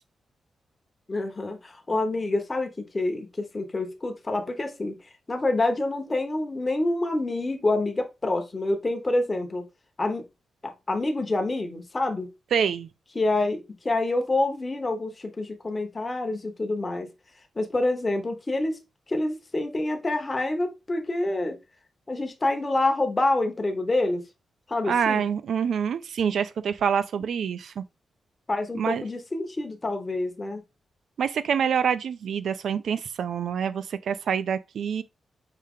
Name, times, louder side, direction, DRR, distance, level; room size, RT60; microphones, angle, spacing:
voice 1, 1.1-2.7 2.9-5.0 5.3-9.6 10.0-10.2 10.9-12.3 13.1-17.1 17.6-18.8 19.1-21.6 22.1-24.2 24.7-25.3 28.5-30.6, left 2 dB, 20° left, 0.7 m, -27 dB
voice 2, 12.5-12.9 24.8-27.8 28.8-29.0 31.2-35.0, right 7 dB, 70° right, 0.4 m, -26 dB
4.9 x 2.8 x 3.6 m
wide cardioid pair, 160°, 0 cm